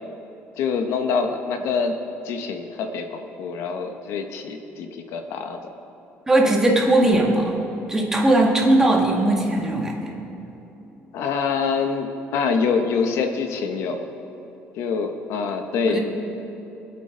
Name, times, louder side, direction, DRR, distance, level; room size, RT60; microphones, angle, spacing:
voice 1, 0.6-1.9 2.2-5.6 6.4-6.5 11.1-14.1 14.8-16.0, left 5 dB, 70° left, 6 dB, 1.0 m, -25 dB
voice 2, 6.3-7.5 7.9-10.1 15.8-16.0, right 1 dB, 10° right, -2 dB, 1.8 m, -19 dB
24.5 x 8.5 x 3.9 m, 3.0 s
cardioid pair, 155°, 5 cm